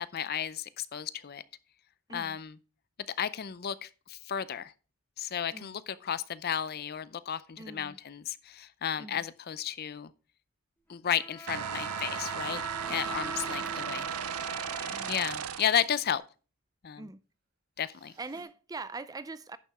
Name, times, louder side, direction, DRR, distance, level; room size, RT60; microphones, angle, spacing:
voice 1, 0.0-1.4 2.1-2.5 3.2-4.7 5.2-10.1 10.9-12.6 12.9-14.1 15.1-16.2 16.8-17.1 17.8-18.1, left 9 dB, 45° left, 0.5 m, -33 dB
voice 2, 7.6-8.0 9.0-9.2 12.9-13.1 13.5-13.6 14.9-15.2 17.0-17.2 18.2-19.6, right 3 dB, 15° right, 0.4 m, -43 dB
Bowed string instrument, 11.1-16.2, right 2 dB, 10° left, 1.4 m, -41 dB
sound 1, 11.5-15.9, right 9 dB, 80° right, 0.5 m, -36 dB
sound 2, 12.8-13.6 14.0-14.1 17.8-18.4, right 4 dB, 50° right, 3.5 m, -56 dB
10.5 x 7.1 x 3.5 m
head